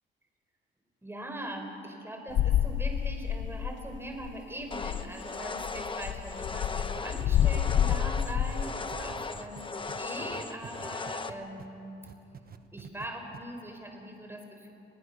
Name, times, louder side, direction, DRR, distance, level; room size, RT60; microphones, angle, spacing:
voice 1, 1.0-12.0 12.7-14.7, right 1 dB, 10° right, 3 dB, 4.9 m, -41 dB
sound 1, 2.3-4.0 4.2-4.4 4.6-5.1 5.6-8.7, left 10 dB, 70° left, 0.7 m, -28 dB
sound 2, 4.7-11.3, left 4 dB, 25° left, 1.2 m, -38 dB
sound 3, 6.8-11.7 12.0-13.1 13.3-13.4, right 7 dB, 50° right, 1.5 m, -47 dB
29.5 x 21.0 x 6.8 m, 2.9 s
cardioid pair, 90°, 20 cm